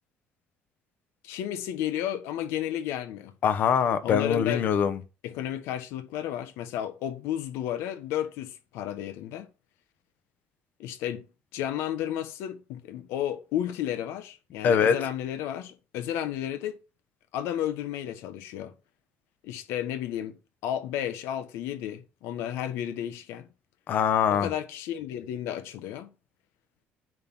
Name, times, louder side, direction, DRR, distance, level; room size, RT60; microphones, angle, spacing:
voice 1, 1.2-3.3 4.0-4.6 5.2-9.5 10.8-11.3 11.5-16.8 17.3-18.7 19.4-20.4 20.6-23.5 24.3-26.1, left 11 dB, 90° left, 1.3 m, -32 dB
voice 2, 3.4-5.0 14.6-15.0 23.9-24.5, left 7 dB, 45° left, 1.1 m, -23 dB
9.5 x 3.9 x 6.2 m
cardioid pair, 160°, 4 cm